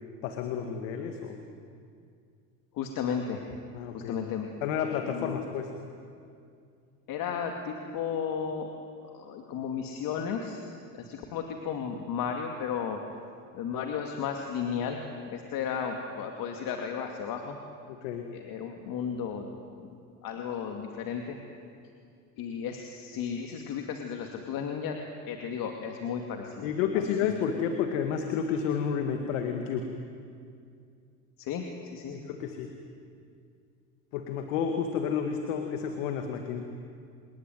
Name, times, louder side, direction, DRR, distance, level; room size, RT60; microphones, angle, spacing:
voice 1, 0.2-1.4 3.7-4.2 4.6-5.7 17.9-18.3 26.6-29.9 32.1-32.7 34.1-36.7, left 7 dB, 90° left, 5 dB, 2.1 m, -30 dB
voice 2, 2.7-3.4 3.9-4.5 4.8-5.3 7.1-8.7 9.0-10.6 10.9-13.0 13.5-15.0 15.3-17.6 18.3-19.5 19.8-19.9 20.2-21.4 22.4-25.0 25.3-27.3 31.4-32.2, left 7 dB, 60° left, 3 dB, 2.5 m, -34 dB
27.0 x 20.5 x 9.3 m, 2.4 s
supercardioid pair, 100°, 38 cm